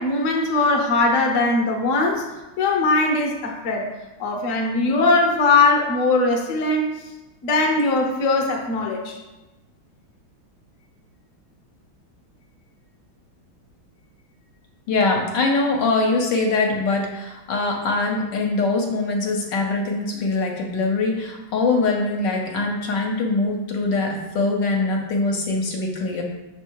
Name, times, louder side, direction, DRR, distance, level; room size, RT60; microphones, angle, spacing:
voice 1, 0.0-2.2 2.6-3.9 4.2-7.1 7.4-9.2, left 3 dB, 55° left, 1 dB, 1.0 m, -20 dB
voice 2, 14.9-26.2, left 3 dB, 70° left, 1 dB, 1.3 m, -23 dB
6.2 x 3.4 x 4.5 m, 1.0 s
omnidirectional pair, 2.2 m